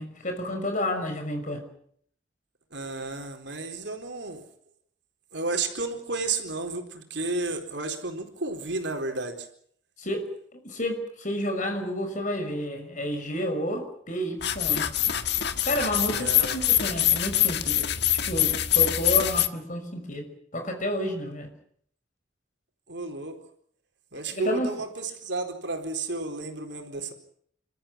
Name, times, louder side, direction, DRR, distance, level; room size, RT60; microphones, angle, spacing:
voice 1, 0.0-1.6 10.0-10.3 10.5-14.9 15.6-17.9 18.3-20.3 20.5-21.5 24.3-24.7, equal, 40° left, 6 dB, 5.9 m, -30 dB
voice 2, 2.7-4.4 5.3-9.5 16.1-16.6 22.9-23.3 24.1-27.1, right 3 dB, 65° right, 5 dB, 4.2 m, -32 dB
sound 1, 14.4-19.5, left 11 dB, 60° left, 1.6 m, -24 dB
29.5 x 13.5 x 10.0 m, 0.65 s
head